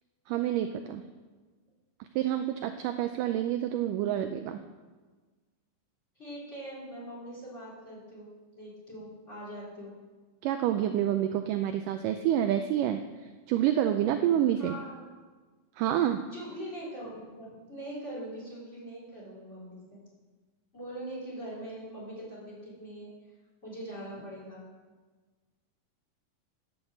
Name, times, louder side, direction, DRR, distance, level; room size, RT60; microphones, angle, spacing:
voice 1, 0.3-1.0 2.2-4.6 10.4-13.0 13.5-14.8 15.8-16.2, right 11 dB, 80° right, 7 dB, 2.0 m, -28 dB
voice 2, 6.2-10.0 14.6-15.0 16.3-20.0 20.7-23.1 23.6-24.6, right 1 dB, 20° left, -6 dB, 4.1 m, -42 dB
9.5 x 7.2 x 7.8 m, 1.4 s
omnidirectional pair, 4.1 m